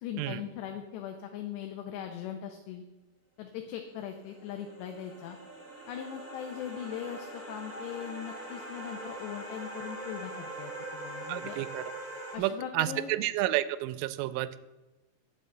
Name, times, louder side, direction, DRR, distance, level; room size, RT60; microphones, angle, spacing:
voice 1, 0.0-2.8 3.4-5.4 5.9-11.6 12.3-13.1, left 9 dB, 75° left, 5 dB, 2.7 m, -40 dB
sound 1, 3.9-12.4, right 1 dB, 15° left, 2.7 m, -42 dB
voice 2, 11.3-11.8 12.4-14.6, right 15 dB, 85° right, 15 dB, 3.1 m, -31 dB
11.0 x 6.6 x 7.7 m, 1.1 s
omnidirectional pair, 5.6 m